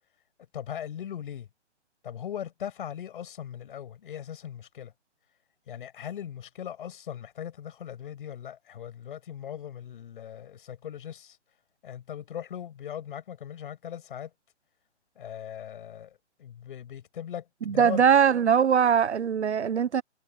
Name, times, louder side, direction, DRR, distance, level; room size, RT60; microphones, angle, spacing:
voice 1, 0.5-1.5 2.0-4.9 5.7-11.4 11.8-14.3 15.2-18.1, left 9 dB, 45° left, 7.2 m, -39 dB
voice 2, 17.7-20.0, right 7 dB, 65° right, 1.1 m, -21 dB
hypercardioid pair, 155°, 36 cm